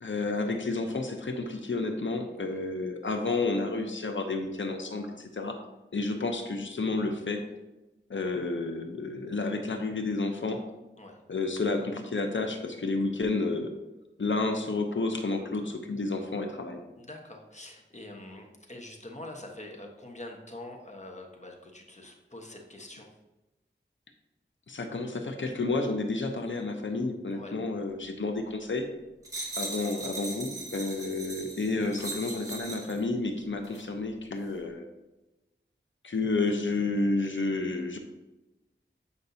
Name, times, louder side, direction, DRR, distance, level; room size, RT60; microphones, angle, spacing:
voice 1, 0.0-5.6 5.9-7.4 8.1-10.6 11.3-13.7 14.2-16.8 24.7-28.9 29.6-34.9 36.0-38.0, left 3 dB, 70° left, 5 dB, 0.7 m, -30 dB
voice 2, 17.0-23.1 27.3-27.6 30.8-31.1, left 1 dB, 35° left, 1 dB, 1.1 m, -45 dB
sound 1, 29.2-33.0 33.6-33.8, right 2 dB, 15° right, 1.6 m, -39 dB
8.2 x 5.2 x 2.7 m, 1.0 s
wide cardioid pair, 50°, 20 cm